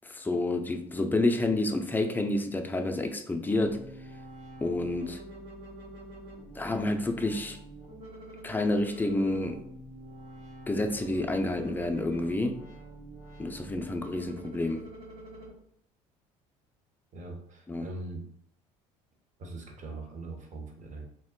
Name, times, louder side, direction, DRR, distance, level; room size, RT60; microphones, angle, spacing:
voice 1, 0.0-3.8 4.6-5.2 6.6-7.6 8.4-9.6 10.7-12.6 13.4-14.9 17.7-17.9, left 2 dB, 10° left, 5 dB, 0.4 m, -29 dB
sound 1, 3.5-15.5, right 1 dB, 90° right, 1.0 m, -46 dB
voice 2, 17.1-18.2 19.4-21.1, right 2 dB, 45° right, 2 dB, 0.8 m, -41 dB
2.2 x 2.1 x 3.6 m, 0.71 s
hypercardioid pair, 70°, 17 cm